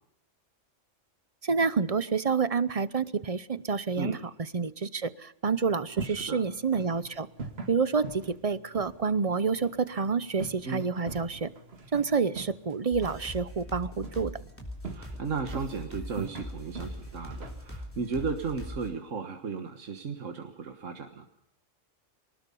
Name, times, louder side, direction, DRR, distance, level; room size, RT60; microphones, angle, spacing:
voice 1, 1.4-4.2 4.5-7.3 7.7-11.5 11.9-14.3, right 5 dB, 35° right, 15 dB, 0.8 m, -28 dB
sound 1, 5.5-19.0, right 4 dB, 55° right, 2.0 m, -44 dB
voice 2, 6.0-6.4 10.7-10.9 14.8-21.2, right 5 dB, 85° right, 5 dB, 1.8 m, -35 dB
sound 2, 12.9-18.9, equal, 10° left, 3.4 m, -41 dB
24.5 x 19.5 x 5.5 m, 0.79 s
omnidirectional pair, 1.3 m